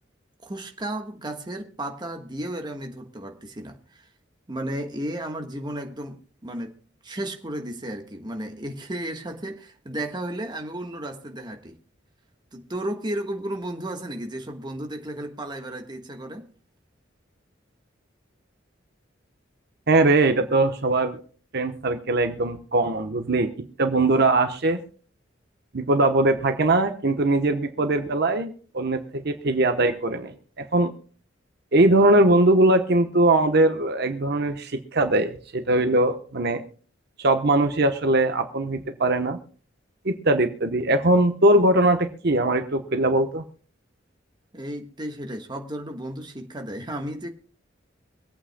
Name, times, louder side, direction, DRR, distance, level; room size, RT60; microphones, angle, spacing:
voice 1, 0.4-4.1 4.5-11.8 12.5-16.5 44.5-47.3, right 1 dB, 25° right, 1.3 m, -34 dB
voice 2, 19.9-21.2 21.5-23.5 23.8-24.8 25.7-30.9 31.7-36.6 37.2-39.4 40.0-43.4, right 2 dB, 60° right, 1.0 m, -21 dB
25.0 x 8.7 x 2.2 m
head